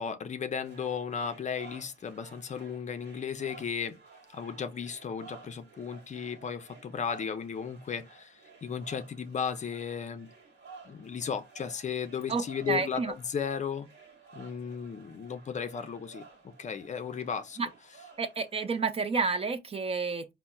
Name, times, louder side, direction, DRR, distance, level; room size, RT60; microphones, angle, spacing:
voice 1, 0.0-4.0 4.3-10.3 10.8-13.9 14.3-16.2 16.6-17.6, left 7 dB, 35° left, 0.5 m, -35 dB
sound 1, 0.6-18.8, right 5 dB, 60° right, 1.2 m, -54 dB
voice 2, 12.3-13.1 17.6-17.7 18.2-20.3, right 4 dB, 30° right, 0.4 m, -30 dB
4.1 x 2.0 x 2.2 m
cardioid pair, 90°, 20 cm